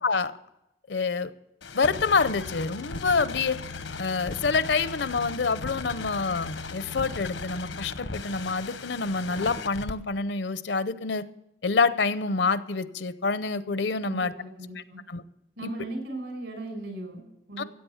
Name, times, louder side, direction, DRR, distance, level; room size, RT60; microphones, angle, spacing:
voice 1, 0.0-0.3 0.9-1.3 1.7-3.6 4.0-11.2 11.6-14.3 15.1-15.2 15.6-15.7 17.6-17.7, left 4 dB, 70° left, 14 dB, 0.6 m, -27 dB
sound 1, 1.6-9.9, left 4 dB, 90° left, 1.1 m, -37 dB
voice 2, 14.0-15.0 15.6-17.7, right 2 dB, 75° right, 3 dB, 5.4 m, -37 dB
16.0 x 8.6 x 7.1 m, 0.86 s
head